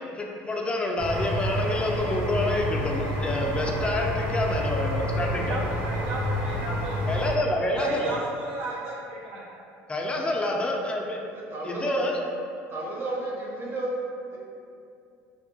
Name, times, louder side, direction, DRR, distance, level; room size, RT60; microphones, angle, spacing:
voice 1, 0.1-5.6 7.1-8.1 9.9-11.2 11.6-12.2, left 1 dB, 15° left, 0 dB, 0.4 m, -27 dB
sound 1, 1.0-7.3, left 1 dB, 60° right, 1.0 m, -29 dB
voice 2, 5.3-7.0 7.8-9.4, right 2 dB, 90° right, -4 dB, 0.4 m, -35 dB
voice 3, 11.3-12.0 12.7-13.9 14.3-14.4, right 2 dB, 40° right, -4 dB, 0.6 m, -32 dB
2.7 x 2.1 x 2.7 m, 2.5 s
supercardioid pair, 95°, 6 cm